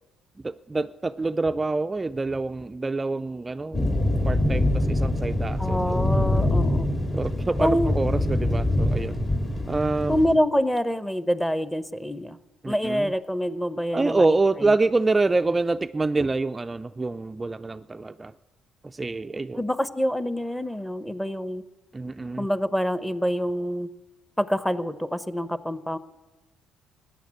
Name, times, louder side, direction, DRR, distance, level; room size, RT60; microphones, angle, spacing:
voice 1, 0.4-3.9 4.2-6.1 7.1-9.2 9.7-10.2 12.6-13.1 13.9-18.3 18.8-19.6 21.9-22.5, right 3 dB, 25° right, 9 dB, 0.4 m, -26 dB
sound 1, 3.7-10.3, left 1 dB, 40° left, 3.1 m, -24 dB
voice 2, 5.6-6.9 7.6-7.9 10.1-12.4 12.7-14.2 14.6-14.7 19.5-21.6 22.4-23.9 24.4-26.0, equal, 5° left, 15 dB, 0.8 m, -26 dB
14.5 x 8.9 x 8.7 m, 1.1 s
hypercardioid pair, 60°, 0 cm